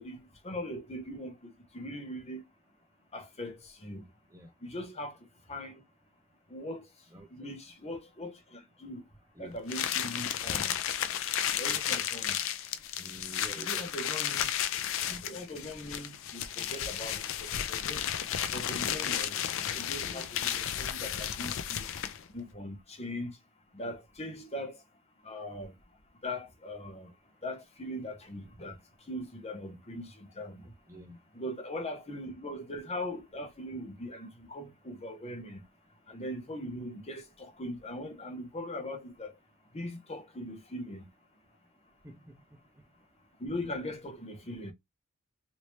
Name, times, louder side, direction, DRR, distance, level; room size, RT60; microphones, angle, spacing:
voice 1, 0.0-2.4 3.1-4.0 4.6-5.1 5.5-5.7 6.5-6.8 7.3-9.0 9.4-10.7 11.5-12.3 13.6-14.5 15.1-17.2 17.7-18.0 18.5-19.3 19.8-21.8 22.3-23.3 23.7-24.8 25.2-25.7 26.2-27.1 27.4-28.8 29.1-30.6 31.3-35.6 36.1-39.3 39.7-41.1 43.4-44.7, left 1 dB, 30° left, 0.9 m, -40 dB
sound 1, 9.7-22.3, left 10 dB, 65° left, 0.4 m, -33 dB
voice 2, 13.0-13.8 20.0-20.3 30.9-31.2 42.0-42.4, right 1 dB, 15° right, 0.5 m, -47 dB
3.2 x 2.7 x 3.1 m
head